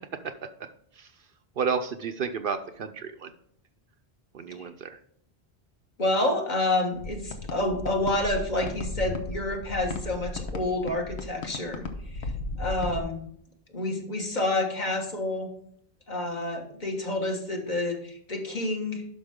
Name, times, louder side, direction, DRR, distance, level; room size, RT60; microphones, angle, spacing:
voice 1, 1.6-3.3 4.3-5.0, right 6 dB, 60° right, 8 dB, 0.7 m, -31 dB
voice 2, 6.0-11.8 12.1-12.3 12.6-13.2 13.7-15.5 16.1-19.0, left 2 dB, 45° left, 2 dB, 1.5 m, -28 dB
sound 1, 6.9-13.0, left 2 dB, 75° left, 1.2 m, -35 dB
11.5 x 5.5 x 3.6 m, 0.65 s
omnidirectional pair, 1.1 m